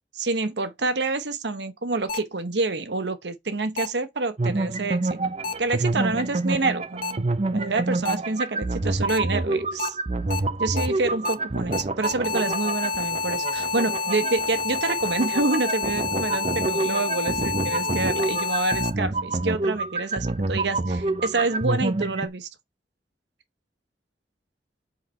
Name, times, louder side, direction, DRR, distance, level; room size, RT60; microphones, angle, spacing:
voice 1, 0.1-5.3 5.6-7.3 7.5-10.0 10.6-22.5, right 3 dB, 75° right, 1.0 m, -27 dB
sound 1, 2.1-2.2 3.8-3.9 5.4-5.5 7.0-7.1 8.0-8.1 9.1-9.2 9.8-9.9 10.3-10.4 10.8-10.9 11.2-11.3 11.7-18.9, left 4 dB, 50° left, 0.9 m, -28 dB
sound 2, 4.4-22.3, right 2 dB, 35° right, 0.6 m, -28 dB
7.6 x 4.1 x 4.4 m
head